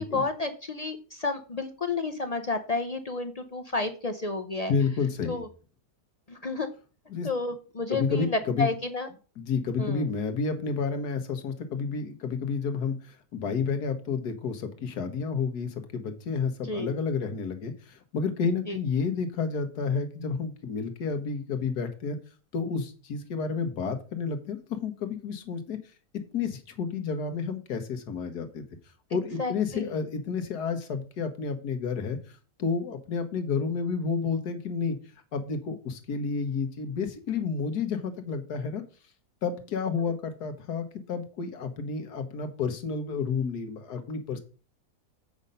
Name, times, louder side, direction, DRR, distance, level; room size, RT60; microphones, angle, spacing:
voice 1, 0.0-4.7 5.3-5.5 6.3-6.7 7.2-9.1 9.8-10.0 16.7-16.9 18.7-18.8 29.4-29.9, left 3 dB, 55° left, 7 dB, 0.4 m, -31 dB
voice 2, 4.7-5.4 7.1-7.3 7.9-8.7 9.4-22.2 22.5-25.8 26.3-28.6 29.1-35.0 35.3-38.8 39.4-44.4, left 5 dB, 85° left, 8 dB, 1.7 m, -30 dB
8.0 x 5.3 x 5.5 m, 0.36 s
omnidirectional pair, 1.6 m